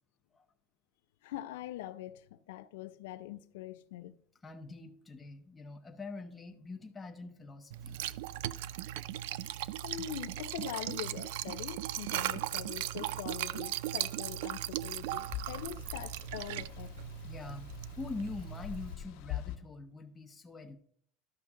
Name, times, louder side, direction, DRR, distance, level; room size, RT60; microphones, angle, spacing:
voice 1, 1.2-4.2 9.8-16.9, left 12 dB, 90° left, 0.5 m, -43 dB
voice 2, 4.4-8.0 17.2-17.7 18.0-20.8, left 3 dB, 10° left, 0.8 m, -44 dB
Liquid, 7.7-18.9, right 13 dB, 75° right, 0.3 m, -38 dB
sound 1, 14.8-19.6, left 11 dB, 60° left, 1.2 m, -44 dB
12.5 x 5.8 x 3.7 m
cardioid pair, 170°, 0 cm